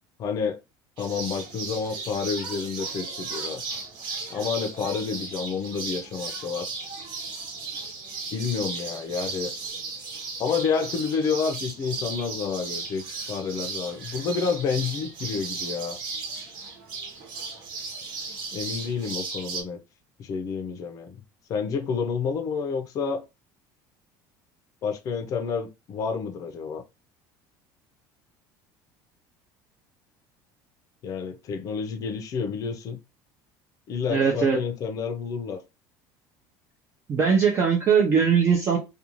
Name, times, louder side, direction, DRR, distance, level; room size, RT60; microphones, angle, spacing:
voice 1, 0.2-0.6 1.0-3.6 4.3-6.7 8.3-9.5 10.4-13.0 13.3-16.0 18.5-19.8 20.2-21.2 21.5-23.2 24.8-26.8 31.0-33.0 33.9-35.6, left 5 dB, 40° left, 0.6 m, -29 dB
sound 1, 1.0-19.6, right 4 dB, 55° right, 1.0 m, -35 dB
voice 2, 34.1-34.6 37.1-38.8, right 6 dB, 25° right, 0.6 m, -20 dB
2.5 x 2.3 x 2.9 m
cardioid pair, 155°, 9 cm